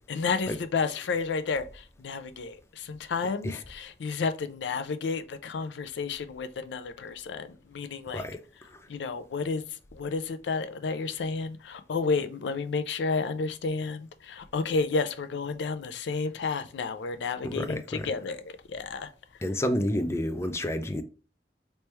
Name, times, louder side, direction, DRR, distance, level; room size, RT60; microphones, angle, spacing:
voice 1, 0.1-8.2 8.9-19.1, left 4 dB, 80° left, 0.4 m, -31 dB
voice 2, 17.4-18.1 19.4-21.0, left 1 dB, 15° left, 0.4 m, -30 dB
3.3 x 3.1 x 3.0 m
head